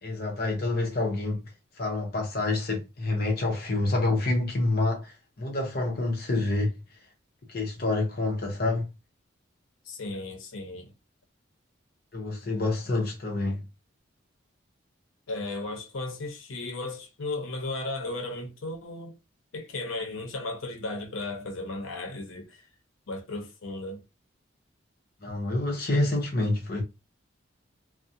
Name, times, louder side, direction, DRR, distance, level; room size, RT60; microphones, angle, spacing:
voice 1, 0.0-1.5 1.8-6.8 7.5-8.9 12.1-13.6 25.2-26.8, left 2 dB, 50° left, 0.7 m, -27 dB
voice 2, 9.9-10.9 15.3-19.2 19.5-22.6 23.1-24.0, left 2 dB, 85° left, 0.7 m, -35 dB
2.4 x 2.1 x 2.6 m
head